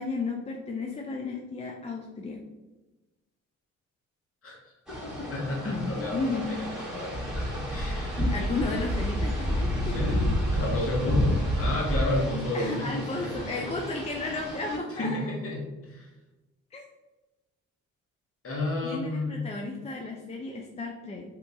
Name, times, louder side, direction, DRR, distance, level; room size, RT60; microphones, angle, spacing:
voice 1, 0.0-2.4 5.7-6.5 8.2-10.1 12.5-15.2 16.7-16.8 18.8-21.2, left 3 dB, 20° left, 0 dB, 0.5 m, -33 dB
voice 2, 4.4-8.2 9.8-13.7 14.9-16.1 18.4-19.4, left 1 dB, 50° left, -3 dB, 1.3 m, -32 dB
sound 1, 4.9-14.8, equal, ahead, 1.2 m, -30 dB
2.9 x 2.5 x 3.5 m, 1.1 s
supercardioid pair, 65°, 29 cm